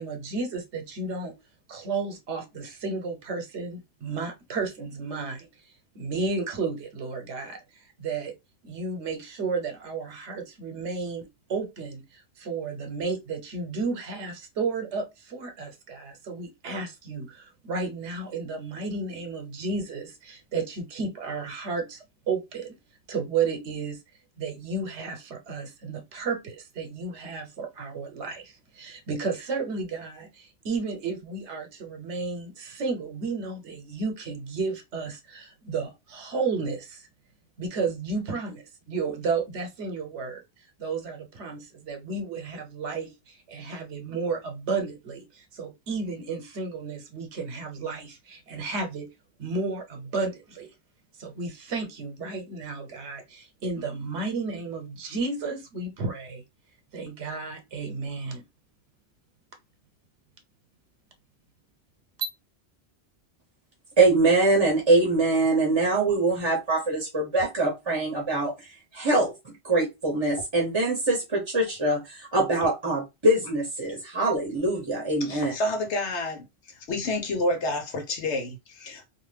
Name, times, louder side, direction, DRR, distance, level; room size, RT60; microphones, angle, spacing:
voice 1, 0.0-1.3 1.7-5.5 5.9-8.3 8.6-22.8 23.1-24.0 24.4-37.1 37.6-40.4 40.8-49.1 49.4-50.7 51.2-56.4 56.9-58.4 62.2-62.3, right 4 dB, 85° right, 1.0 m, -32 dB
voice 2, 64.0-69.3 69.6-75.5, right 2 dB, 30° right, 0.7 m, -23 dB
voice 3, 75.2-76.5 76.9-79.1, left 2 dB, 85° left, 1.2 m, -29 dB
2.5 x 2.4 x 3.1 m
omnidirectional pair, 1.1 m